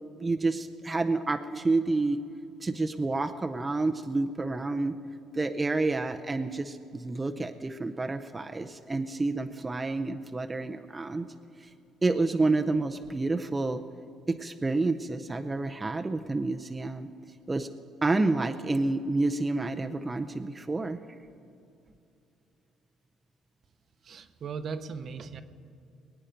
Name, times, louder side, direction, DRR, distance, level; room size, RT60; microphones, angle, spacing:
voice 1, 0.2-2.2 2.6-5.0 5.3-11.3 11.6-11.7 12.0-13.8 14.3-17.1 17.5-17.7 18.0-21.0, right 3 dB, 20° right, 6 dB, 0.5 m, -29 dB
voice 2, 24.0-25.4, right 5 dB, 50° right, 10 dB, 0.8 m, -38 dB
22.0 x 8.9 x 5.2 m, 2.7 s
cardioid pair, 115°, 0 cm